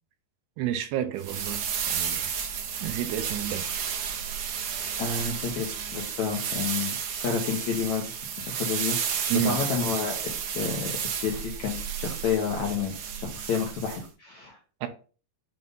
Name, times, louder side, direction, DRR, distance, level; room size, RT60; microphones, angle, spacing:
voice 1, 0.6-2.3 2.8-3.6 9.3-9.6 14.8-14.9, right 10 dB, 80° right, 2.7 m, -30 dB
sound 1, 1.2-14.0, right 7 dB, 65° right, 2.1 m, -32 dB
voice 2, 5.0-8.0 8.4-14.6, left 6 dB, 75° left, 1.7 m, -30 dB
7.6 x 2.6 x 5.3 m
omnidirectional pair, 4.8 m